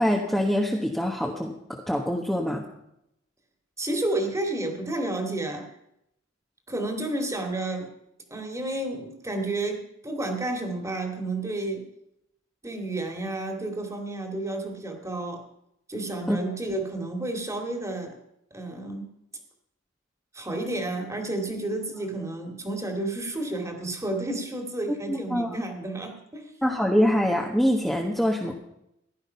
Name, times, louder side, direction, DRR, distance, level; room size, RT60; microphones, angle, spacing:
voice 1, 0.0-1.5 1.9-2.6 16.3-16.4 25.1-25.6 26.6-28.5, equal, ahead, -2 dB, 1.3 m, -24 dB
voice 2, 3.8-5.7 6.7-7.9 8.3-11.9 12.6-15.4 15.9-18.2 18.5-19.1 20.3-26.5, right 2 dB, 15° right, 4 dB, 2.2 m, -31 dB
16.0 x 11.5 x 5.7 m, 0.79 s
head